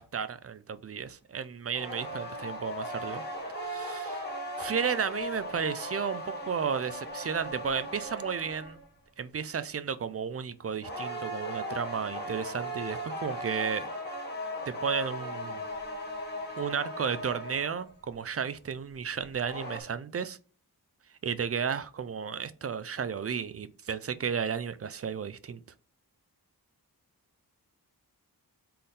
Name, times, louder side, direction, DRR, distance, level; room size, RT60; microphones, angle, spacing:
voice 1, 0.0-3.2 3.6-4.2 4.6-8.8 9.2-13.9 14.7-15.6 16.6-20.4 21.2-25.6, right 7 dB, 40° right, 0.4 m, -33 dB
sound 1, 1.7-8.9 10.8-17.9 19.2-19.8, equal, 25° left, 1.5 m, -37 dB
4.2 x 3.8 x 3.3 m
wide cardioid pair, 105°, 39 cm